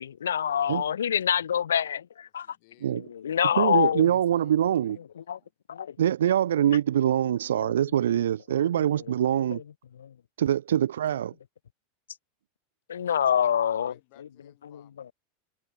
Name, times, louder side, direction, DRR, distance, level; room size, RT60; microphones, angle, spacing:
voice 1, 0.0-2.5 3.2-4.1 5.3-5.4 5.7-5.9 9.5-9.6 10.0-10.1 12.9-13.9, left 8 dB, 80° left, 0.5 m, -25 dB
voice 2, 2.2-5.5 13.0-15.1, left 30 dB, 55° left, 7.7 m, -62 dB
voice 3, 3.6-5.0 6.0-9.6 10.4-11.3, right 10 dB, 75° right, 0.4 m, -24 dB
hypercardioid pair, 90°, 0 cm